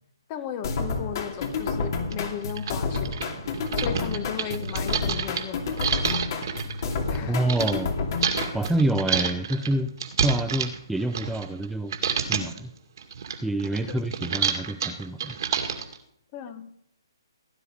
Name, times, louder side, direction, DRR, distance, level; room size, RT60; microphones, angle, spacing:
voice 1, 0.3-3.1 3.7-6.1 7.1-7.4 13.9-14.1 16.3-16.7, left 9 dB, 30° left, 10 dB, 1.5 m, -36 dB
sound 1, 0.6-8.9, left 4 dB, 50° left, 2.7 m, -30 dB
sound 2, 1.4-1.5 2.1-2.2 2.5-7.7 8.2-11.7 11.9-12.6 13.0-16.0, right 7 dB, 60° right, 2.2 m, -29 dB
voice 2, 7.3-8.0 8.5-9.9 10.2-11.9 12.3-12.7 13.4-15.4, right 1 dB, ahead, 6 dB, 0.5 m, -27 dB
17.0 x 9.9 x 5.1 m, 0.73 s
hypercardioid pair, 140°, 2 cm